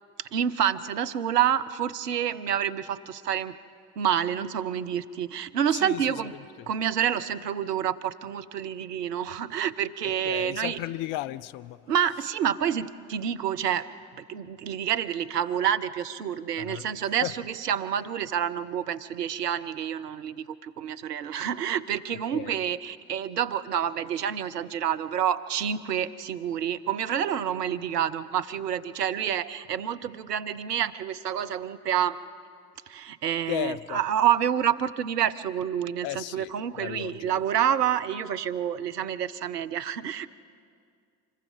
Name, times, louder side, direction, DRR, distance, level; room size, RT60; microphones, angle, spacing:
voice 1, 0.2-3.6 4.0-6.4 6.7-10.8 11.9-13.8 14.2-32.2 32.9-40.3, right 9 dB, 85° right, 0.6 m, -28 dB
voice 2, 5.7-6.0 6.3-6.4 10.3-11.8 16.6-16.9 17.2-17.3 22.3-22.6 33.5-34.0 36.0-37.4, left 14 dB, 55° left, 0.6 m, -34 dB
25.5 x 20.5 x 5.0 m
figure-of-eight pair, 45°, 47 cm